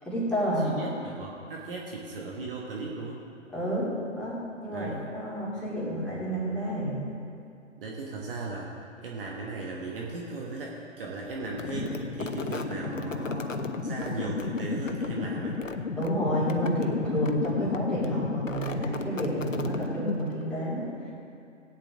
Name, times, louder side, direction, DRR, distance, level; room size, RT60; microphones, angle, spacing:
voice 1, 0.0-0.9 3.5-7.0 16.0-21.1, equal, 5° left, -10 dB, 3.3 m, -30 dB
voice 2, 0.6-3.2 4.7-5.1 7.8-8.7 9.0-15.6, right 3 dB, 45° right, -2 dB, 1.6 m, -37 dB
sound 1, 11.4-20.4, left 4 dB, 80° left, 0.9 m, -32 dB
17.0 x 9.1 x 3.8 m, 2.4 s
figure-of-eight pair, 125°, 38 cm